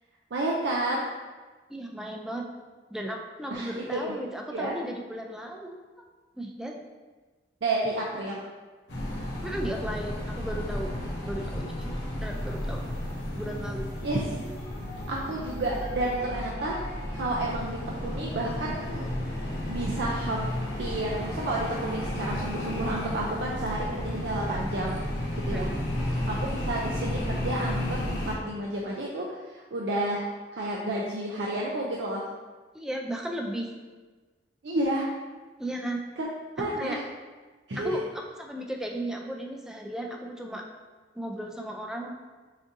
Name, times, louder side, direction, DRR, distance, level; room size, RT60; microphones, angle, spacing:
voice 1, 0.3-1.1 3.5-4.0 4.5-4.7 7.6-8.4 14.0-14.4 15.1-16.8 17.2-19.1 19.7-20.5 20.8-25.0 25.5-25.7 26.0-30.2 30.5-32.3 34.6-35.1 36.2-36.3 36.6-37.0 37.7-38.0, right 1 dB, 80° right, -3 dB, 0.5 m, -31 dB
voice 2, 1.7-2.5 2.9-5.8 6.4-6.7 9.4-10.9 11.2-11.9 12.2-12.8 13.3-13.9 25.5-25.8 32.7-33.7 35.6-36.0 36.7-37.0 37.7-40.6 41.1-42.1, right 1 dB, 5° right, 1 dB, 0.3 m, -35 dB
sound 1, 8.9-28.3, left 1 dB, 80° left, 1.0 m, -33 dB
6.1 x 2.6 x 2.6 m, 1.3 s
head